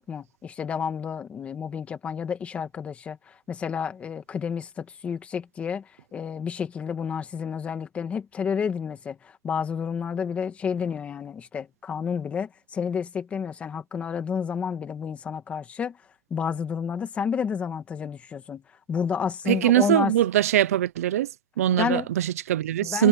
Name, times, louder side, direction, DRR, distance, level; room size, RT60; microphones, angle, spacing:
voice 1, 0.0-16.0 16.3-18.6 18.9-20.1 21.8-22.1 22.8-23.1, left 7 dB, 15° left, 1.9 m, -30 dB
voice 2, 19.5-21.3 21.6-23.1, right 12 dB, 85° right, 0.9 m, -22 dB
supercardioid pair, 165°, 8 cm